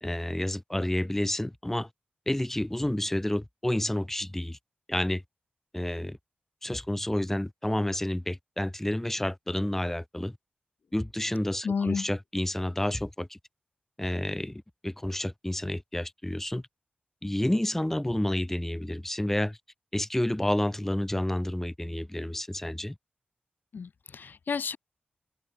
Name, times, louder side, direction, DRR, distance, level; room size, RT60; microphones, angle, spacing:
voice 1, 0.0-1.9 2.3-4.6 4.9-5.2 5.7-6.2 6.6-10.4 10.9-13.4 14.0-16.6 17.2-19.6 19.9-23.0, left 1 dB, 10° left, 1.6 m, -30 dB
voice 2, 11.6-12.1 23.7-24.8, left 5 dB, 65° left, 6.2 m, -31 dB
open air
wide cardioid pair, 95°, 3 cm